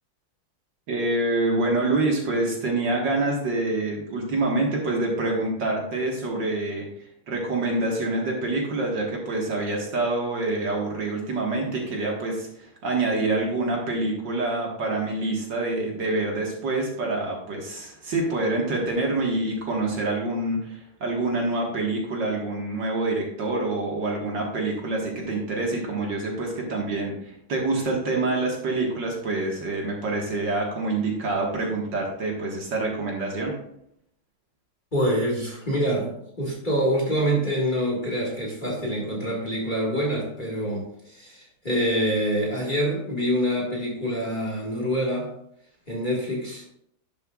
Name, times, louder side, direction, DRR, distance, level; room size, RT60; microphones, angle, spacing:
voice 1, 0.9-6.9 7.3-33.6, right 2 dB, 60° right, -1 dB, 2.3 m, -26 dB
voice 2, 34.9-45.3 45.9-46.6, equal, 25° left, -3 dB, 1.9 m, -26 dB
11.5 x 6.9 x 2.4 m, 0.72 s
omnidirectional pair, 2.3 m